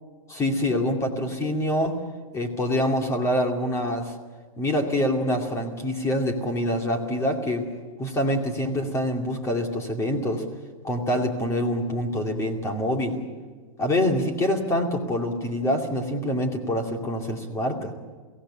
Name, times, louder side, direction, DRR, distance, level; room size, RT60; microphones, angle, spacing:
voice 1, 0.3-2.0 2.3-4.1 4.6-7.6 8.0-10.4 10.8-13.2 13.8-17.9, left 1 dB, 15° left, 3 dB, 2.5 m, -25 dB
23.0 x 16.5 x 8.9 m, 1.4 s
hypercardioid pair, 150°, 17 cm